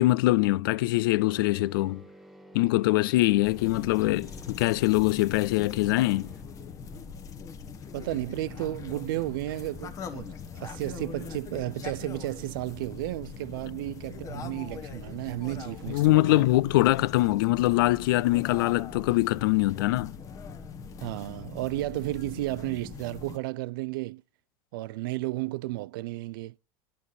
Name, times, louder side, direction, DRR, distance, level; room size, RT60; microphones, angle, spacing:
voice 1, 0.0-2.0 2.5-6.3 15.9-20.2, left 18 dB, 85° left, 0.4 m, -23 dB
sound 1, 1.2-6.4, right 1 dB, ahead, 0.9 m, -51 dB
sound 2, 3.4-23.4, left 6 dB, 30° left, 1.0 m, -42 dB
voice 2, 7.9-16.4 21.0-24.2 24.7-26.5, right 18 dB, 85° right, 0.4 m, -33 dB
9.3 x 7.2 x 4.1 m
supercardioid pair, 140°, 11 cm